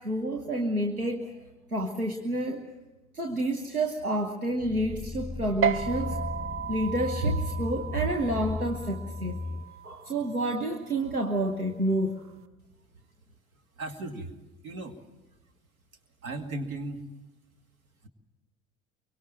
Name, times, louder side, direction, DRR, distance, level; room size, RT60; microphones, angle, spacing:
voice 1, 0.0-1.3 1.7-2.6 3.1-6.2 6.7-9.4 9.8-12.1, right 1 dB, 90° right, 4 dB, 1.2 m, -29 dB
sound 1, 4.6-9.7, left 3 dB, 10° left, 1.8 m, -36 dB
sound 2, 5.6-12.4, right 8 dB, 30° right, 0.8 m, -35 dB
voice 2, 13.8-14.3 14.6-15.0 16.2-17.0 18.0-18.1, right 2 dB, 75° right, 7 dB, 2.4 m, -36 dB
23.5 x 23.5 x 7.5 m, 1.1 s
figure-of-eight pair, 60°, 43 cm